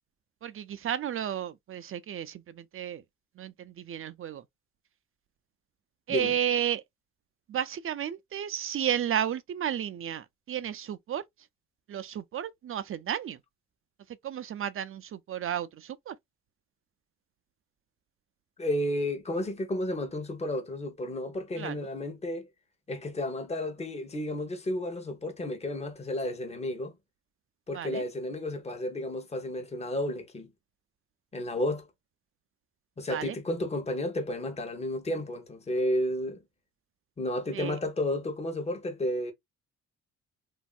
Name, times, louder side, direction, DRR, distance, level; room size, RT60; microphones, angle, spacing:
voice 1, 0.4-3.0 3.4-4.4 6.1-6.8 7.5-11.2 11.9-13.4 14.2-15.7 16.1-16.2 21.6-21.9 27.7-28.0 33.1-33.3 37.5-37.8, right 10 dB, 45° right, 0.4 m, -32 dB
voice 2, 18.6-22.5 22.9-27.0 27.7-30.5 31.3-31.9 33.0-36.4 37.2-39.3, left 1 dB, 20° left, 1.0 m, -32 dB
3.1 x 2.7 x 2.3 m
cardioid pair, 90°, 30 cm